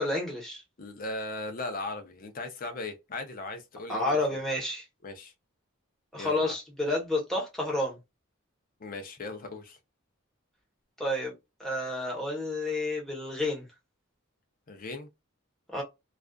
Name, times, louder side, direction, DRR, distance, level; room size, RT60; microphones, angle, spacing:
voice 1, 0.0-0.6 3.9-4.8 6.1-8.0 11.0-11.3 11.6-13.6 15.7-15.8, left 2 dB, ahead, 0.9 m, -30 dB
voice 2, 0.8-4.4 5.0-5.3 6.1-6.5 8.8-9.8 14.7-15.1, left 2 dB, 45° left, 0.5 m, -38 dB
2.4 x 2.3 x 2.2 m
head